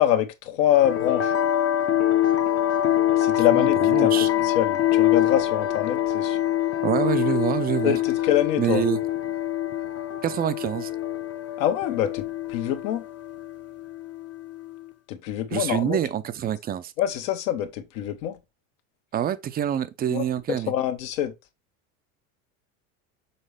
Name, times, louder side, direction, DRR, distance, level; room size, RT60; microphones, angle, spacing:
voice 1, 0.0-1.3 3.2-6.4 7.8-8.8 11.6-13.0 15.1-16.0 17.0-18.4 20.1-20.2 20.7-21.3, left 11 dB, 70° left, 1.4 m, -25 dB
sound 1, 0.7-14.8, left 12 dB, 35° left, 0.9 m, -25 dB
voice 2, 3.5-4.3 6.8-8.0 8.6-9.0 10.2-10.9 15.5-16.9 19.1-20.7, right 10 dB, 20° right, 0.5 m, -26 dB
6.7 x 4.1 x 3.4 m
supercardioid pair, 115°, 41 cm